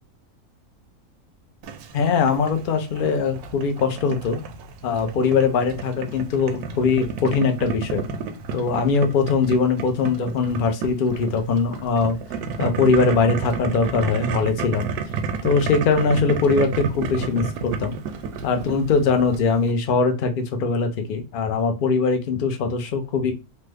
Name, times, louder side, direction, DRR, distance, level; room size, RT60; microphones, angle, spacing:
Boiling, 1.6-19.7, right 5 dB, 85° right, 1.1 m, -32 dB
voice 1, 1.9-4.4 4.8-8.0 8.5-12.2 12.6-14.9 15.4-18.0 18.4-23.3, left 4 dB, 70° left, 6 dB, 0.4 m, -21 dB
3.2 x 2.0 x 3.3 m, 0.28 s
omnidirectional pair, 1.6 m